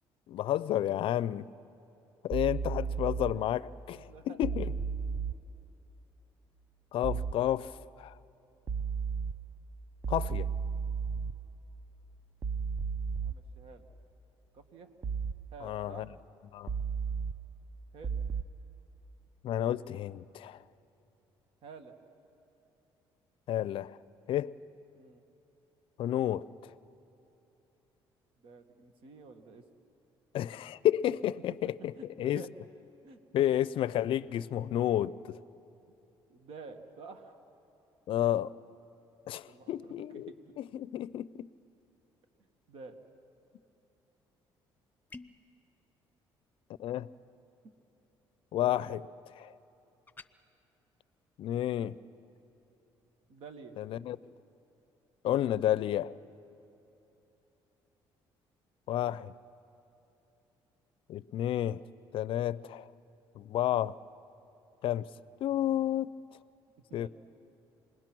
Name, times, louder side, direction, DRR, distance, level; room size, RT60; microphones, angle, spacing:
voice 1, 0.3-1.4 2.2-4.7 6.9-8.2 10.1-10.5 15.6-16.1 16.5-16.7 19.4-20.6 23.5-24.0 24.3-24.5 26.0-26.4 30.3-32.4 33.3-35.4 38.1-38.5 39.3-40.3 40.6-41.5 46.8-47.1 48.5-49.1 49.4-49.5 51.4-52.0 53.8-54.2 55.2-56.1 58.9-59.3 61.1-61.8 62.1-62.9 63.4-64.0 64.8-65.1 65.4-66.1 66.9-67.1, left 12 dB, 65° left, 0.5 m, -31 dB
sound 1, 2.3-3.3 4.4-5.3 7.0-7.3 8.7-9.3 10.0-11.3 12.4-13.3 15.0-15.3 16.7-17.3 18.0-18.4, right 6 dB, 35° right, 0.7 m, -33 dB
voice 2, 3.9-4.4 13.2-13.8 14.5-14.9 15.5-16.1 17.9-18.2 21.6-21.9 24.9-25.2 28.4-29.6 31.9-32.5 33.0-33.2 35.9-36.0 36.3-37.4 39.4-40.4 42.7-43.0 53.3-53.8 66.9-67.1, right 4 dB, 70° right, 1.7 m, -50 dB
sound 2, 45.1-45.5 50.1-50.3, left 3 dB, 20° left, 0.6 m, -48 dB
27.5 x 20.5 x 6.1 m
cardioid pair, 95°, 10 cm